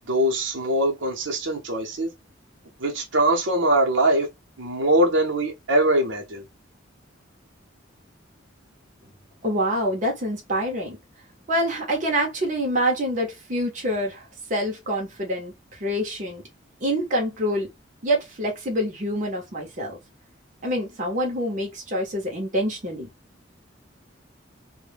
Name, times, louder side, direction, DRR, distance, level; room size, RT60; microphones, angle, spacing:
voice 1, 0.1-2.1 2.8-4.3 4.6-6.5, right 1 dB, 70° right, 0.7 m, -22 dB
voice 2, 9.4-11.0 11.5-15.5 15.8-16.4 16.8-17.7 18.0-20.0 20.6-23.1, equal, 40° right, 0.7 m, -26 dB
2.1 x 2.1 x 3.2 m
head